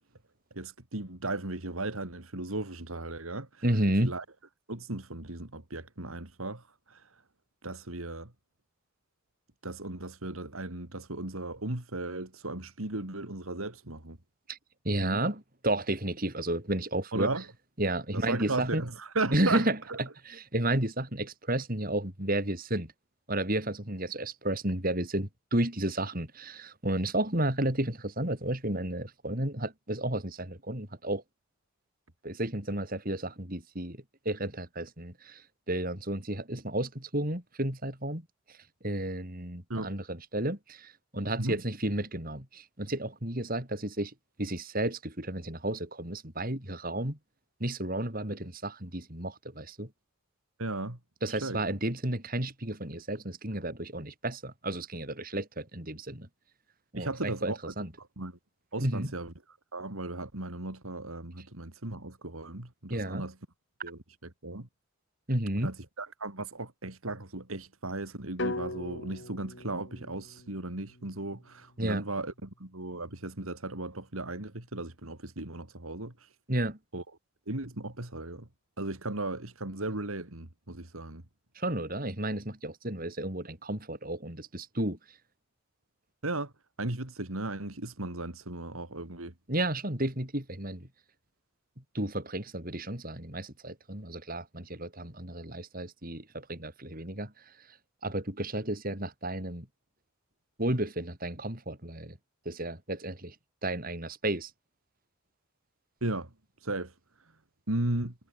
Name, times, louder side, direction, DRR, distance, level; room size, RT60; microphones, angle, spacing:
voice 1, 0.5-3.6 4.0-4.2 4.7-7.1 7.6-8.3 9.6-14.2 15.0-15.2 17.1-17.5 18.1-20.0 39.7-39.9 41.4-41.6 50.6-51.0 51.3-51.6 56.9-58.4 58.7-59.3 59.7-63.4 63.8-64.7 65.6-76.3 76.9-77.0 77.5-78.5 78.8-81.2 86.2-86.5 86.8-89.3 106.0-106.3 106.6-106.9 107.7-108.1, right 2 dB, 85° right, 3.3 m, -36 dB
voice 2, 3.6-4.1 14.5-14.6 14.9-17.3 17.8-18.8 19.3-19.8 20.3-22.9 23.3-31.2 32.2-34.0 34.3-35.4 35.7-38.2 38.8-44.1 44.4-47.2 47.6-49.9 51.2-56.3 56.9-57.9 58.8-59.1 62.9-63.3 65.3-65.7 71.8-72.0 76.5-76.8 81.6-85.0 89.5-90.9 91.9-97.3 98.0-99.7 100.6-102.2 102.5-103.3 103.6-104.5, right 1 dB, 45° right, 5.3 m, -32 dB
sound 1, 68.4-72.5, left 2 dB, 60° left, 2.9 m, -40 dB
head